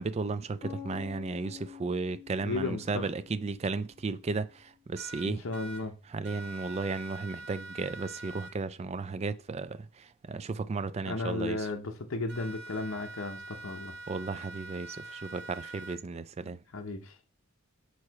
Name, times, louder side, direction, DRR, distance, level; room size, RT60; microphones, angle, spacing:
voice 1, 0.0-5.5 6.1-11.7 14.1-16.6, right 4 dB, 30° right, 0.3 m, -34 dB
sound 1, 0.6-4.5, left 8 dB, 15° left, 1.6 m, -47 dB
voice 2, 2.4-3.0 5.2-5.9 11.1-13.9 16.7-17.3, left 3 dB, 60° left, 0.8 m, -34 dB
sound 2, 4.9-5.8 6.2-8.5 12.3-16.0, right 2 dB, 50° right, 1.0 m, -44 dB
4.8 x 4.2 x 4.7 m
head